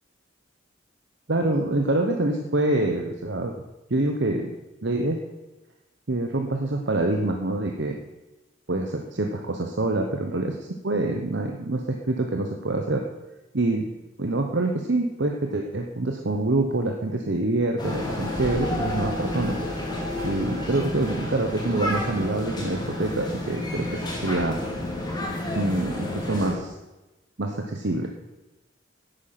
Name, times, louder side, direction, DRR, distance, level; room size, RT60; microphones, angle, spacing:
voice 1, 1.3-3.5 3.9-4.5 4.8-5.2 6.1-7.9 8.7-10.6 10.8-11.8 12.1-13.0 13.5-13.8 14.2-19.6 20.2-24.6 25.5-26.7 27.4-28.1, right 2 dB, 60° right, 3 dB, 0.9 m, -26 dB
sound 1, 17.8-26.5, left 1 dB, 20° left, 2.5 m, -30 dB
10.5 x 8.5 x 5.8 m, 1.0 s
head